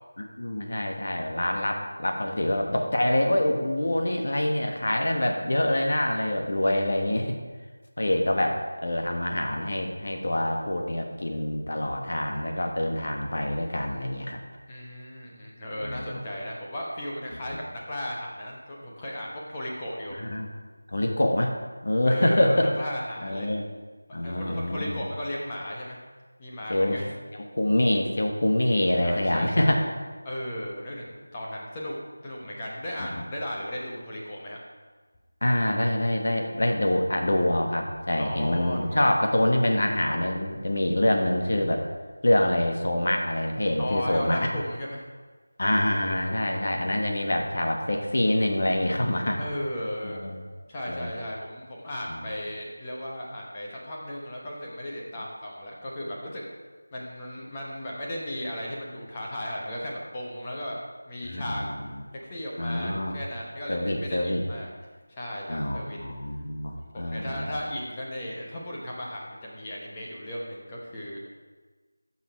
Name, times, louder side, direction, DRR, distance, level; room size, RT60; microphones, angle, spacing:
voice 1, 0.4-7.4 8.0-14.4 15.8-16.2 20.1-20.5 20.9-21.5 21.8-22.7 23.2-23.6 24.1-25.0 26.7-27.0 27.3-29.9 33.0-33.2 35.4-41.8 42.2-44.5 45.6-49.4 50.0-50.4 50.9-51.1 52.1-52.2 61.2-61.6 62.6-63.1 63.7-64.4 65.5-67.5, left 1 dB, 50° left, 2 dB, 1.6 m, -25 dB
voice 2, 14.7-20.2 22.1-23.5 24.2-26.0 26.4-27.2 29.0-29.8 30.2-31.9 32.2-34.6 38.2-39.1 43.8-45.1 49.4-50.4 50.7-56.4 56.9-60.8 61.0-61.6 62.3-64.7 65.1-66.0 66.9-71.2, left 1 dB, 15° left, -4 dB, 1.0 m, -35 dB
14.5 x 6.1 x 4.6 m, 1.4 s
figure-of-eight pair, 175°, 0 cm